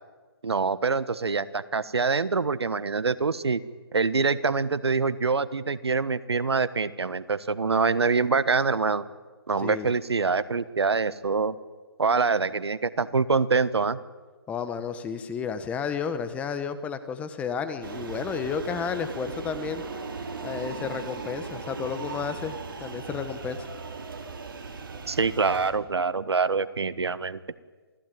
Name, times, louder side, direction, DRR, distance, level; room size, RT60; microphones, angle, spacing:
voice 1, 0.4-3.6 3.9-9.0 9.5-11.5 12.0-14.0 25.1-27.4, right 4 dB, 85° right, 16 dB, 1.4 m, -25 dB
voice 2, 9.6-9.9 14.5-19.8 20.4-22.5 22.8-23.7, left 6 dB, 10° left, 10 dB, 1.2 m, -32 dB
sound 1, 17.8-25.7, right 4 dB, 55° right, 4.9 m, -37 dB
28.0 x 19.0 x 9.3 m, 1.4 s
hypercardioid pair, 155°, 13 cm